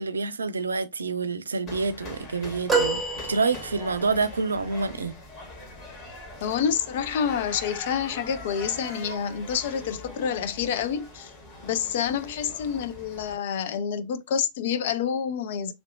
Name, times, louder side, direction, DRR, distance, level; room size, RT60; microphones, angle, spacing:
voice 1, 0.0-3.0 3.3-5.1, right 4 dB, 75° right, 0.3 m, -27 dB
sound 1, 1.7-13.4, left 2 dB, 35° left, 1.3 m, -42 dB
sound 2, 2.7-4.1 4.8-4.9, right 4 dB, 5° right, 1.1 m, -27 dB
voice 2, 6.4-11.3 11.6-15.7, left 7 dB, 55° left, 0.4 m, -28 dB
3.1 x 2.6 x 2.6 m
figure-of-eight pair, 90°, 0 cm